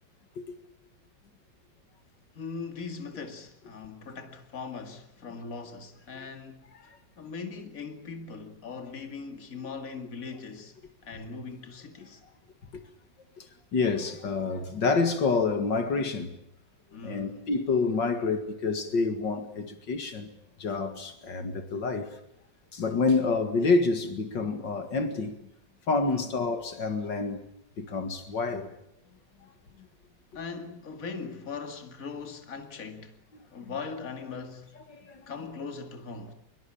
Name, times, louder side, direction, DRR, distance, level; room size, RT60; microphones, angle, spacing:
voice 1, 2.3-10.8 11.0-12.2 16.9-17.5 26.0-26.3 30.3-33.2 33.5-34.8 35.3-36.3, left 4 dB, 50° left, 2.6 m, -40 dB
voice 2, 13.4-16.4 17.0-20.3 20.6-22.2 22.7-25.4 25.9-27.4 27.8-28.7 34.9-35.2, left 4 dB, 75° left, 2.7 m, -28 dB
24.5 x 23.5 x 8.7 m
omnidirectional pair, 2.0 m